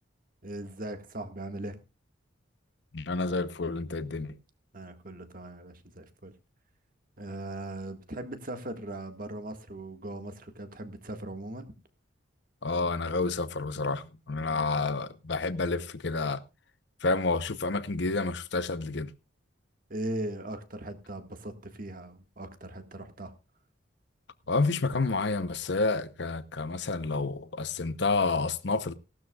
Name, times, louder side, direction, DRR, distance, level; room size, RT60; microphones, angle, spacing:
voice 1, 0.4-1.8 4.7-6.3 7.2-11.7 14.5-14.7 19.9-23.3, right 1 dB, 45° right, 1.7 m, -39 dB
voice 2, 2.9-4.4 12.6-16.4 17.0-19.1 24.5-28.9, left 3 dB, 60° left, 0.8 m, -29 dB
18.0 x 12.5 x 2.3 m
head